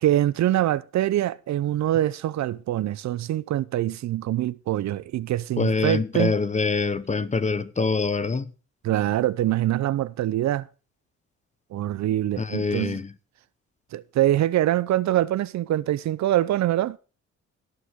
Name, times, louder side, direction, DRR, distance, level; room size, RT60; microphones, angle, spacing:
voice 1, 0.0-6.3 8.8-10.7 11.7-13.0 13.9-17.0, right 13 dB, 65° right, 0.6 m, -24 dB
voice 2, 5.6-8.5 12.4-13.1, left 4 dB, 25° left, 0.9 m, -25 dB
18.0 x 6.6 x 3.6 m
cardioid pair, 90°, 30 cm